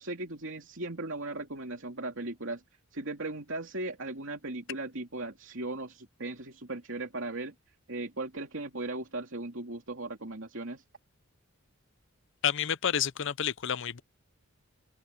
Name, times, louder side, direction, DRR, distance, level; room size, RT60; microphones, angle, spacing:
voice 1, 0.0-2.6 2.9-7.5 7.9-10.8, right 2 dB, 60° right, 3.2 m, -37 dB
voice 2, 12.4-14.0, left 9 dB, 60° left, 0.6 m, -29 dB
head